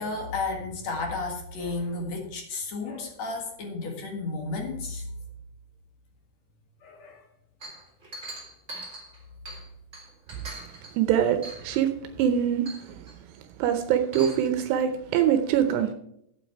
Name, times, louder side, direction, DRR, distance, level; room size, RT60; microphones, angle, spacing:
voice 1, 0.0-5.0 6.8-7.2, left 3 dB, 50° left, 3 dB, 2.4 m, -32 dB
Chink clink, 7.6-9.7 9.9-11.0 11.4-11.8 12.2-12.3 12.6-13.1 13.9-14.5, right 2 dB, 20° right, 3.5 m, -41 dB
voice 2, 11.0-11.9 12.2-13.0 13.6-15.9, right 9 dB, 85° right, 7 dB, 2.9 m, -24 dB
12.0 x 8.7 x 4.6 m, 0.75 s
omnidirectional pair, 4.9 m